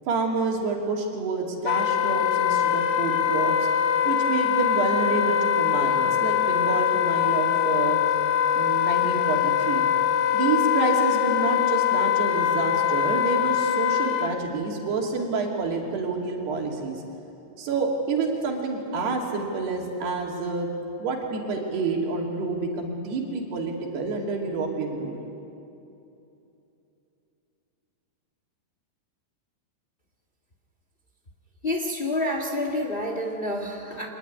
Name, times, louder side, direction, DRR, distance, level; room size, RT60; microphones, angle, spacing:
voice 1, 0.1-3.5 4.1-8.2 8.5-9.8 10.3-17.0 17.6-20.7 21.0-25.2, right 4 dB, 85° right, 0 dB, 4.8 m, -28 dB
Wind instrument woodwind instrument, 1.6-14.3, left 10 dB, 65° left, 2.5 m, -23 dB
voice 2, 31.6-34.1, left 1 dB, 45° left, 2 dB, 0.7 m, -28 dB
25.0 x 21.0 x 9.6 m, 2.8 s
omnidirectional pair, 4.6 m